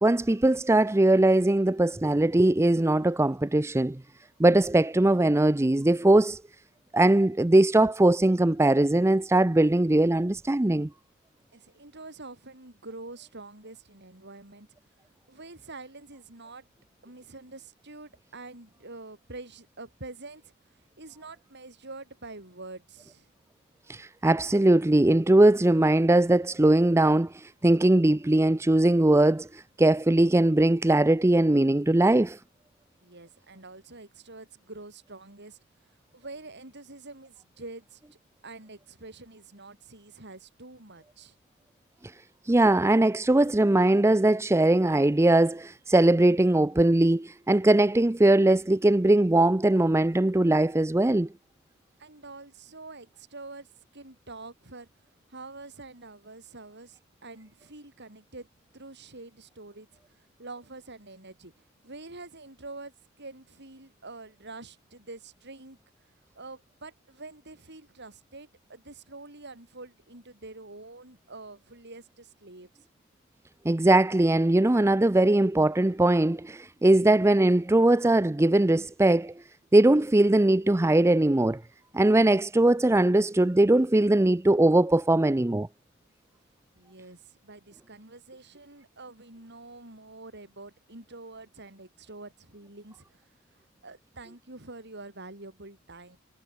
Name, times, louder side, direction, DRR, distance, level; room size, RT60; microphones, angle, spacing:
voice 1, 0.0-4.0 4.4-6.4 6.9-10.9 23.9-32.4 42.5-51.3 73.6-79.3 79.7-81.6 81.9-85.7, right 1 dB, 15° right, 0.5 m, -21 dB
voice 2, 11.5-14.7 15.3-16.7 17.0-20.5 21.0-23.3 33.0-35.6 36.1-38.0 38.4-41.4 52.0-54.9 55.3-58.5 58.7-65.8 66.3-72.7 86.7-93.3 93.8-96.2, right 2 dB, 55° right, 6.7 m, -46 dB
head